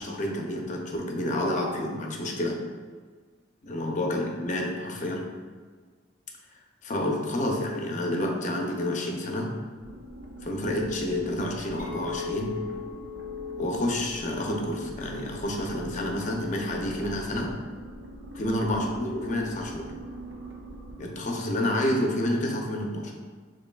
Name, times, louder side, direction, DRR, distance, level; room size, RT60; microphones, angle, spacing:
voice 1, 0.0-2.6 3.6-5.3 6.8-9.5 10.4-12.5 13.6-17.5 18.4-19.9 21.0-23.1, left 1 dB, 45° left, 1 dB, 0.6 m, -29 dB
sound 1, 9.8-21.5, right 1 dB, 80° right, 0.7 m, -43 dB
Chink clink, 11.8-17.0, left 6 dB, 10° right, 0.9 m, -40 dB
6.8 x 3.1 x 2.3 m, 1.5 s
head